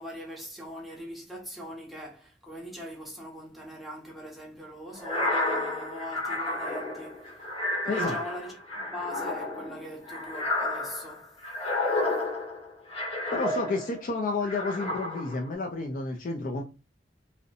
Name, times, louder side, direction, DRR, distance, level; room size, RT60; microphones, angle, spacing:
voice 1, 0.0-7.5 7.8-8.6 8.9-11.3, equal, ahead, 0.7 m, -41 dB
sound 1, 5.0-14.1 14.5-15.5, left 2 dB, 30° left, 0.9 m, -31 dB
voice 2, 7.9-8.2 13.3-16.6, left 3 dB, 50° left, 0.4 m, -30 dB
2.6 x 2.1 x 2.6 m
head